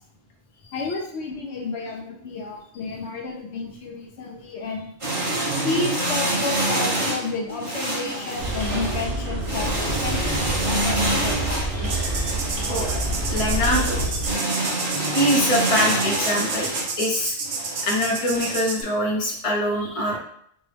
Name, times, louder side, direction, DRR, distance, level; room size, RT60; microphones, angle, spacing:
voice 1, 0.7-4.9 5.6-11.9, left 3 dB, 75° left, 0 dB, 0.9 m, -31 dB
sound 1, 5.0-18.5, right 1 dB, 30° right, 0.9 m, -27 dB
sound 2, 8.4-14.3, right 1 dB, 85° right, 1.2 m, -27 dB
sound 3, 11.8-18.8, right 4 dB, 55° right, 0.6 m, -31 dB
voice 2, 13.3-14.2 15.1-16.7 17.0-17.4 17.8-20.2, equal, 35° left, -2 dB, 0.7 m, -24 dB
4.5 x 2.0 x 3.2 m, 0.67 s
omnidirectional pair, 1.2 m